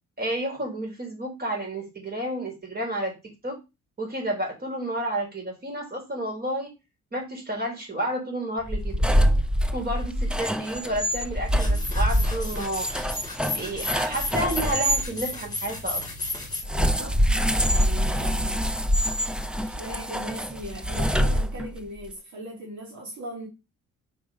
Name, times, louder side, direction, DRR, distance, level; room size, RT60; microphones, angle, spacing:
voice 1, 0.2-3.1 3.4-3.6 4.0-6.7 7.1-9.0 9.7-12.9 13.6-16.0, right 1 dB, 30° right, 3.9 m, -31 dB
sound 1, 8.6-15.1 16.6-21.9, equal, 5° right, 0.6 m, -25 dB
sound 2, 11.6-16.6, left 2 dB, 15° left, 2.9 m, -33 dB
voice 2, 16.7-17.2 17.6-18.7 19.6-23.5, right 1 dB, 70° right, 2.4 m, -39 dB
5.1 x 5.1 x 5.0 m
cardioid pair, 90°, 30 cm